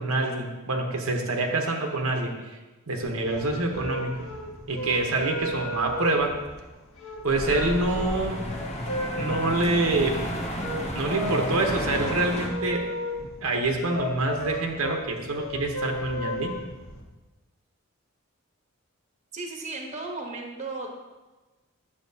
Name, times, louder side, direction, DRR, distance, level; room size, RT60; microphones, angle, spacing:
voice 1, 0.0-2.4 2.9-4.3 4.7-6.4 7.2-8.4 9.2-10.2 10.9-12.8 13.4-16.6, right 2 dB, 90° right, 2 dB, 1.0 m, -26 dB
sound 1, 3.1-17.0, equal, 80° left, 1.4 m, -34 dB
sound 2, 7.3-12.5, equal, 30° left, 0.9 m, -32 dB
voice 2, 19.3-20.9, right 3 dB, 35° right, 1 dB, 0.9 m, -35 dB
8.6 x 7.1 x 2.8 m, 1.2 s
head